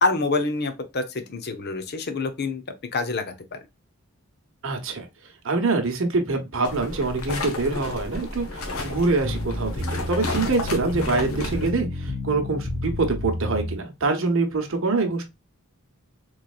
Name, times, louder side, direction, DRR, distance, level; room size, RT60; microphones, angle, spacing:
voice 1, 0.0-2.6 2.9-3.6, left 3 dB, 50° left, 0.7 m, -26 dB
voice 2, 4.6-5.1 5.4-15.2, right 3 dB, 60° right, 1.0 m, -25 dB
sound 1, 6.6-11.7, left 2 dB, 80° left, 1.0 m, -32 dB
sound 2, 9.2-13.8, left 1 dB, 20° right, 1.0 m, -31 dB
4.0 x 3.1 x 2.3 m
head